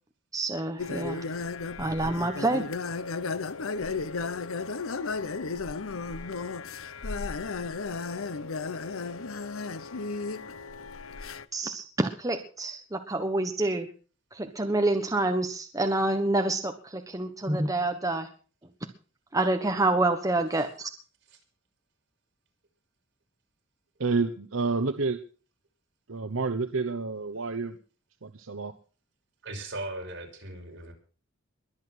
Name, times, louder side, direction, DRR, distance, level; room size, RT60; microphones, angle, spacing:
voice 1, 0.3-1.3 1.8-2.6 11.5-13.9 14.3-18.3 19.3-20.9, right 2 dB, 15° right, 5 dB, 1.3 m, -27 dB
sound 1, 0.8-11.4, left 4 dB, 90° left, 0.8 m, -34 dB
voice 2, 24.0-25.2 26.1-27.8 28.2-28.7, right 4 dB, 80° right, 9 dB, 1.0 m, -29 dB
voice 3, 29.4-30.9, right 2 dB, 60° right, 1 dB, 6.1 m, -38 dB
22.0 x 8.5 x 6.3 m, 0.40 s
head